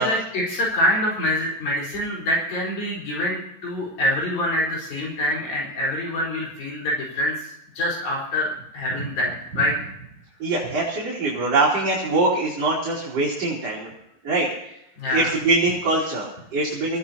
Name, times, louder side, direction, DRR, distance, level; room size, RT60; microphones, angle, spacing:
voice 1, 0.0-7.5 7.8-9.8 15.0-15.3, left 1 dB, 75° left, -4 dB, 6.2 m, -25 dB
voice 2, 10.4-13.9 14.2-14.8 15.1-17.0, right 2 dB, 45° right, -5 dB, 4.3 m, -23 dB
25.0 x 16.5 x 2.9 m, 0.79 s
omnidirectional pair, 4.3 m